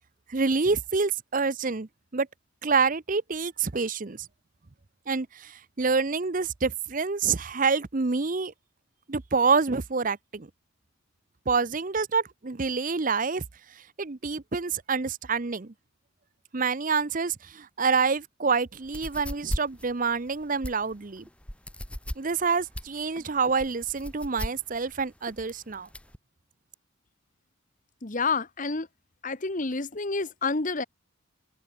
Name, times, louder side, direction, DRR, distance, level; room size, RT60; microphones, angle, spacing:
voice 1, 0.3-2.3 2.6-4.2 5.1-8.5 9.1-10.5 11.5-13.4 14.0-15.7 16.5-21.2 22.2-25.9, right 4 dB, 40° right, 0.7 m, -27 dB
sound 1, 18.8-26.2, equal, 5° left, 4.7 m, -37 dB
voice 2, 28.0-28.9 29.2-30.8, left 4 dB, 40° left, 1.1 m, -29 dB
open air
head